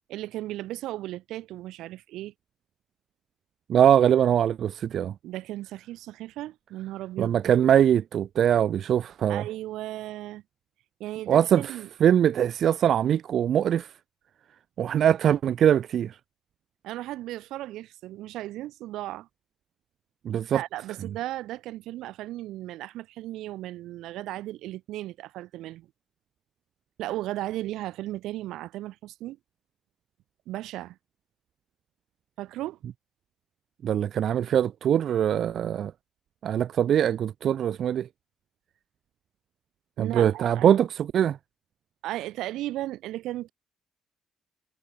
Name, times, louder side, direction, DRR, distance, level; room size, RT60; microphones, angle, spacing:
voice 1, 0.1-2.3 5.2-7.3 9.3-10.4 11.0-11.9 16.8-19.3 20.5-25.9 27.0-29.4 30.5-31.0 32.4-32.8 40.0-40.8 42.0-43.5, right 15 dB, 90° right, 3.4 m, -35 dB
voice 2, 3.7-5.1 7.2-9.4 11.3-11.8 12.0-13.9 14.8-16.2 20.3-20.6 33.8-35.9 36.4-38.1 40.0-41.4, right 9 dB, 65° right, 0.4 m, -22 dB
cardioid pair, 90°, 0 cm